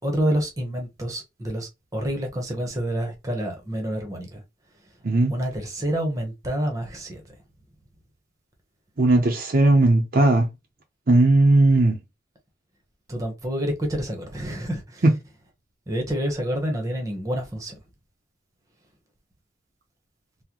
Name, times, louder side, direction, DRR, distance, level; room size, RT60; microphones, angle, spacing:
voice 1, 0.0-4.4 5.3-7.2 13.1-15.0 15.9-17.8, equal, 15° right, 0.9 m, -28 dB
voice 2, 9.0-10.5 11.1-12.0 15.0-15.1, right 2 dB, 50° right, 0.6 m, -17 dB
3.7 x 2.1 x 2.9 m
head